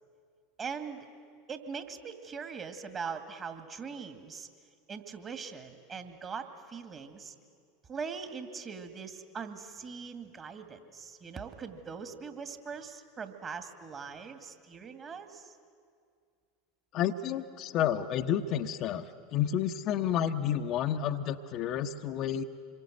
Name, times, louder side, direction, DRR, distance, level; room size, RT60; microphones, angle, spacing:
voice 1, 0.6-1.1 1.5-4.5 4.9-7.3 7.9-15.5, right 5 dB, 30° right, 8 dB, 2.3 m, -41 dB
voice 2, 16.9-22.4, left 9 dB, 45° left, 6 dB, 1.0 m, -30 dB
26.5 x 22.5 x 7.8 m, 2.2 s
figure-of-eight pair, 80°, 0 cm